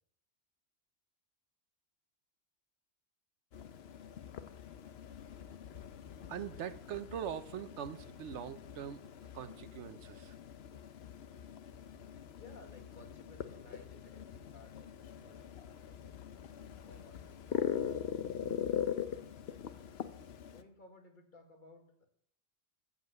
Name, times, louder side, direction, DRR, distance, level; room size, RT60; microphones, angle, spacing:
sound 1, 3.5-20.6, left 9 dB, 70° left, 1.0 m, -42 dB
voice 1, 6.3-9.0 9.3-10.3, right 9 dB, 85° right, 13 dB, 1.0 m, -42 dB
voice 2, 12.3-15.4 15.9-19.2 20.4-22.1, left 2 dB, 45° left, 4 dB, 1.9 m, -59 dB
15.0 x 5.5 x 7.9 m, 0.66 s
omnidirectional pair, 1.1 m